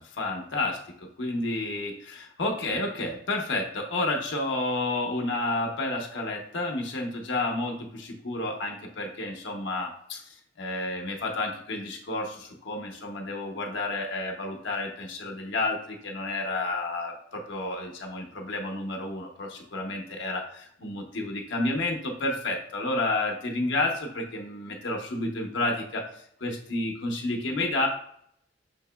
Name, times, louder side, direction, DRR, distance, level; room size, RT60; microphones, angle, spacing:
voice 1, 0.0-27.9, left 2 dB, 80° left, 1 dB, 0.8 m, -31 dB
5.8 x 2.9 x 2.2 m, 0.67 s
head